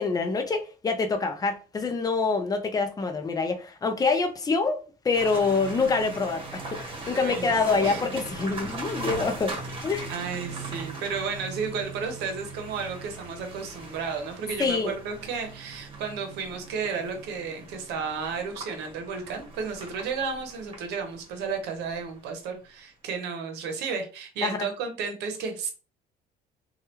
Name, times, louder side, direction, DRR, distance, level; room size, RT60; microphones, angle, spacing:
voice 1, 0.0-9.6 9.8-10.1 14.6-14.9 24.4-24.7, left 4 dB, 20° left, 0.6 m, -26 dB
sound 1, 5.1-22.3, right 3 dB, 30° right, 1.2 m, -39 dB
voice 2, 7.0-7.5 7.8-8.0 10.1-25.7, right 5 dB, 85° right, 0.8 m, -33 dB
3.2 x 2.3 x 2.8 m
cardioid pair, 110°, 17 cm